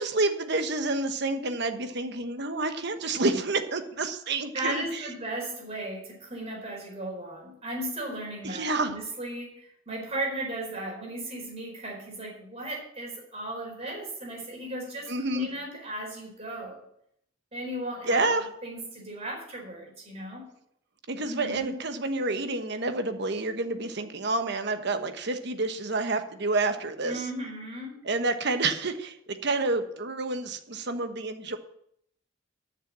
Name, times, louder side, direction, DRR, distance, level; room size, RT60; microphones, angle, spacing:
voice 1, 0.0-5.0 8.4-8.9 15.1-15.5 18.1-18.5 21.1-27.2 28.1-31.6, right 2 dB, 55° right, 8 dB, 1.2 m, -29 dB
voice 2, 4.5-16.8 17.5-20.4 21.2-21.7 27.0-28.0, right 1 dB, 30° right, -1 dB, 4.5 m, -36 dB
11.0 x 6.7 x 7.5 m, 0.71 s
head